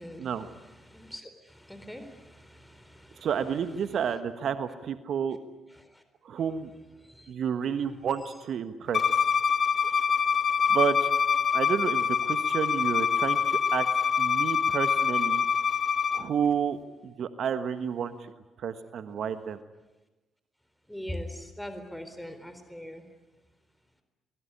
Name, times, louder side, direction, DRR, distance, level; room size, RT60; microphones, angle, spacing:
voice 1, 0.0-3.3 5.8-6.0 7.0-7.3 20.9-23.0, equal, 5° left, 8 dB, 4.1 m, -42 dB
voice 2, 3.2-5.4 6.2-6.7 7.3-9.0 9.8-10.0 10.7-11.1 11.5-13.9 14.2-15.4 16.1-16.8 17.0-18.3 18.6-19.6, right 7 dB, 60° right, 11 dB, 1.3 m, -30 dB
Bowed string instrument, 8.9-16.2, left 6 dB, 50° left, 0.9 m, -25 dB
24.5 x 22.0 x 9.9 m, 1.1 s
hypercardioid pair, 45°, 0 cm